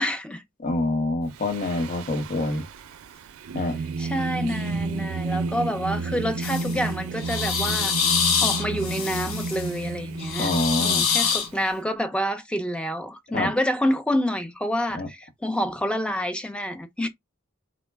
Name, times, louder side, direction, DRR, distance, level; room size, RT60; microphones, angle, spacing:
voice 1, 0.0-0.4 4.0-7.9 8.4-10.5 10.8-17.1, equal, 5° left, 0.4 m, -28 dB
voice 2, 0.6-2.6 3.5-3.8 10.4-11.0 13.3-13.5 14.9-15.1, left 2 dB, 40° left, 0.8 m, -26 dB
Singing, 1.3-11.7, right 3 dB, 80° right, 0.4 m, -32 dB
sound 1, 6.4-6.8 7.2-9.7 10.2-11.5, left 6 dB, 70° left, 0.8 m, -25 dB
3.9 x 2.1 x 3.3 m
head